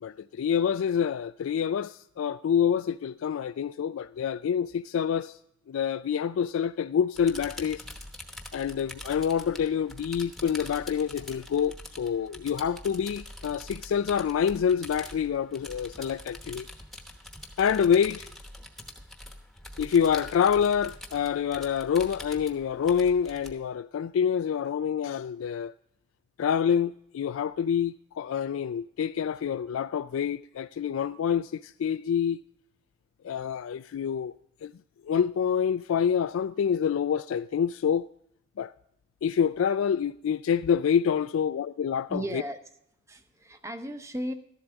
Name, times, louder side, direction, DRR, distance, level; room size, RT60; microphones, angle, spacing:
voice 1, 0.0-5.3 5.7-7.8 8.5-16.7 17.6-18.3 19.8-25.7 26.4-32.4 33.2-34.3 34.6-34.7 35.0-38.1 38.6-38.7 39.2-42.4, left 7 dB, 90° left, 0.3 m, -27 dB
sound 1, 7.1-23.5, left 1 dB, ahead, 1.0 m, -45 dB
voice 2, 42.1-42.6 43.1-44.3, right 1 dB, 15° right, 0.6 m, -35 dB
13.5 x 11.5 x 3.4 m
head